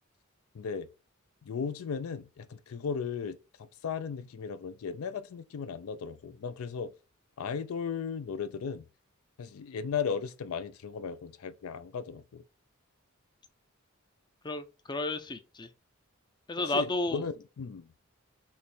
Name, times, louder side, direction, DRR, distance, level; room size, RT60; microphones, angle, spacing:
voice 1, 0.5-0.9 1.4-6.9 7.4-8.9 9.4-12.4 16.6-17.9, left 6 dB, 75° left, 0.4 m, -36 dB
voice 2, 14.4-15.7 16.5-17.2, left 2 dB, 20° left, 0.5 m, -32 dB
3.5 x 3.0 x 4.3 m
head